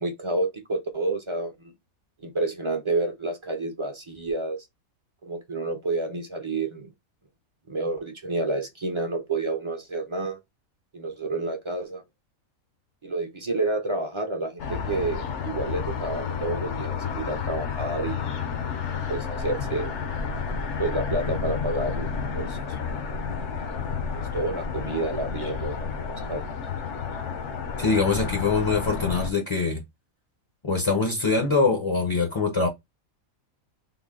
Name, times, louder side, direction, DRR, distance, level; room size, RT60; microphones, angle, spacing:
voice 1, 0.0-1.7 2.2-4.7 5.2-6.9 7.7-10.4 10.9-12.0 13.0-18.4 18.6-19.9 20.8-22.1 22.3-22.6 24.1-26.5, right 2 dB, 35° right, 0.5 m, -29 dB
sound 1, 14.6-29.3, left 6 dB, 65° left, 0.9 m, -31 dB
voice 2, 27.8-29.8 30.6-32.7, left 4 dB, 35° left, 0.5 m, -23 dB
3.8 x 2.1 x 3.6 m
omnidirectional pair, 1.5 m